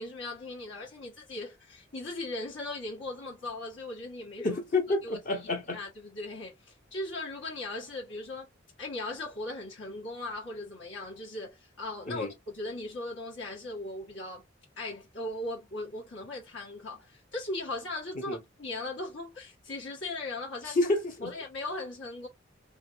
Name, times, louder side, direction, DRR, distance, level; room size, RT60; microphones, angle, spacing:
voice 1, 0.0-4.6 5.0-5.2 5.7-8.5 8.8-12.3 12.5-14.4 14.8-20.8 21.2-22.3, left 2 dB, 85° left, 1.6 m, -38 dB
voice 2, 4.4-5.8 12.1-12.3 18.3-18.4 20.6-21.3, left 2 dB, 45° left, 0.7 m, -29 dB
3.4 x 2.8 x 2.6 m
head